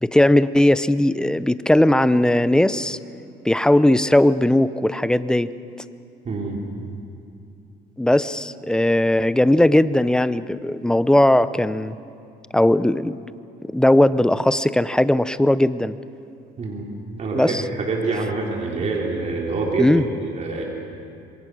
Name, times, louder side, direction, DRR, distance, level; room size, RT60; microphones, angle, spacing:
voice 1, 0.0-3.0 3.4-5.5 8.0-12.0 12.5-13.2 13.7-15.9 17.3-17.6 19.8-20.0, left 1 dB, 5° left, 14 dB, 0.6 m, -18 dB
voice 2, 6.2-6.6 16.6-16.8 17.2-20.6, right 3 dB, 40° right, -2 dB, 3.7 m, -26 dB
26.5 x 22.5 x 6.3 m, 2.5 s
cardioid pair, 110°, 17 cm